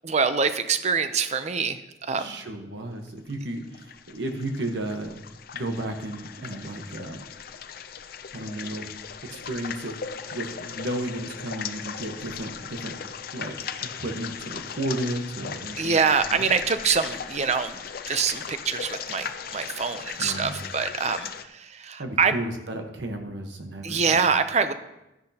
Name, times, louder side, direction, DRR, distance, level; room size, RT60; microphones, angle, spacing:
voice 1, 0.0-2.4 15.8-17.8 18.1-22.3 23.8-24.7, right 5 dB, 40° right, 10 dB, 0.6 m, -25 dB
voice 2, 2.2-5.2 5.5-7.3 8.3-8.9 9.3-10.0 10.3-12.9 13.3-13.5 13.8-16.5 20.2-20.7 22.0-24.2, right 1 dB, 80° right, 4 dB, 1.2 m, -33 dB
sound 1, 3.3-21.4, left 7 dB, 55° left, 0.5 m, -38 dB
12.5 x 10.5 x 2.9 m, 0.92 s
head